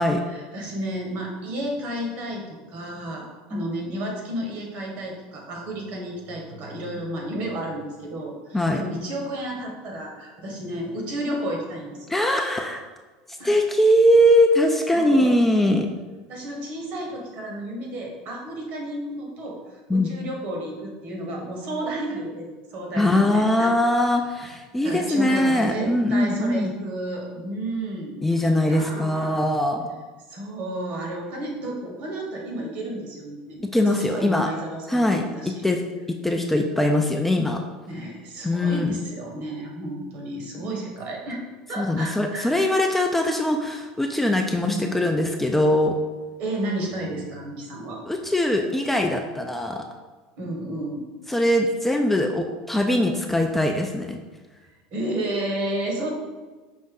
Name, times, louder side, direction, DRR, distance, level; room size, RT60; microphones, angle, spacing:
voice 1, 0.3-12.1 13.4-13.6 14.9-15.3 16.3-23.7 24.8-28.2 28.7-29.4 30.3-33.6 33.9-35.6 37.9-41.4 41.7-42.7 44.5-44.9 46.4-48.0 50.4-51.0 54.9-56.1, right 1 dB, 55° right, 0 dB, 1.2 m, -32 dB
voice 2, 12.1-12.8 13.4-15.9 19.9-20.1 23.0-26.7 28.2-29.9 33.7-34.5 34.9-35.2 35.6-35.8 36.1-37.6 38.4-39.0 41.8-46.0 48.1-49.8 51.3-54.2, left 1 dB, 5° left, 3 dB, 0.3 m, -21 dB
5.3 x 2.6 x 3.7 m, 1.3 s
supercardioid pair, 120°, 3 cm